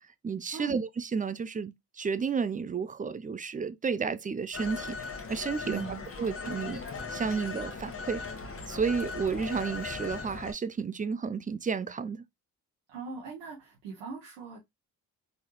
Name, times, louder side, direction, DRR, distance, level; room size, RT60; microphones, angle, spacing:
voice 1, 0.2-5.8 6.2-6.8 7.1-8.2 8.7-12.2, right 5 dB, 20° right, 0.4 m, -32 dB
Telephone, 4.5-10.5, left 4 dB, 30° left, 1.2 m, -38 dB
voice 2, 5.6-6.3 12.9-14.6, right 5 dB, 85° right, 1.0 m, -40 dB
3.8 x 2.6 x 2.9 m
hypercardioid pair, 45°, 43 cm